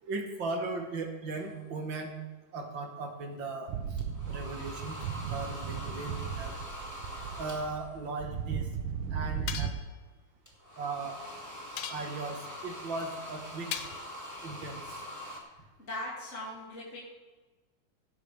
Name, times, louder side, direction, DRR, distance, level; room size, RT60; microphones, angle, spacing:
voice 1, 0.0-2.1 2.5-3.7 4.3-5.0 5.3-6.6 7.4-8.7 9.1-9.7 10.8-11.2 11.9-13.7 14.4-15.0, right 3 dB, 50° right, 3 dB, 1.5 m, -37 dB
sound 1, 1.4-1.6 4.0-8.0 10.5-15.4, equal, 5° right, 1.6 m, -44 dB
sound 2, 3.7-9.7, right 7 dB, 85° right, 1.3 m, -36 dB
sound 3, 9.5-9.9 11.8-12.4 13.7-14.2, left 9 dB, 75° left, 1.7 m, -39 dB
voice 2, 15.8-17.0, left 1 dB, 25° left, -7 dB, 2.5 m, -39 dB
17.5 x 9.6 x 3.4 m, 1.3 s
omnidirectional pair, 3.6 m